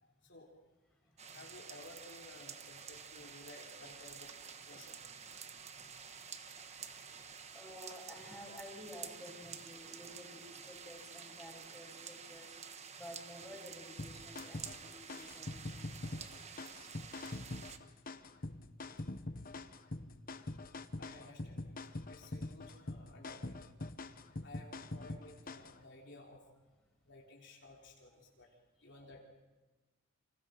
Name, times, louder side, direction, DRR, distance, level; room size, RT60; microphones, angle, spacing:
voice 1, 0.0-0.5 1.3-4.3 4.7-5.0 16.1-16.2 21.0-21.8 22.1-23.5 24.4-26.4 27.1-28.5 28.8-29.2, left 2 dB, 55° left, -1 dB, 3.6 m, -55 dB
voice 2, 1.0-1.5 4.6-6.2 6.6-17.4 19.9-20.0 20.3-20.9 24.1-24.3 28.1-29.0, equal, ahead, -3 dB, 7.6 m, -54 dB
sound 1, 1.2-17.8, right 6 dB, 30° right, 1.3 m, -50 dB
sound 2, 14.0-25.8, left 2 dB, 40° left, 1.1 m, -44 dB
29.5 x 27.0 x 5.2 m, 1.2 s
head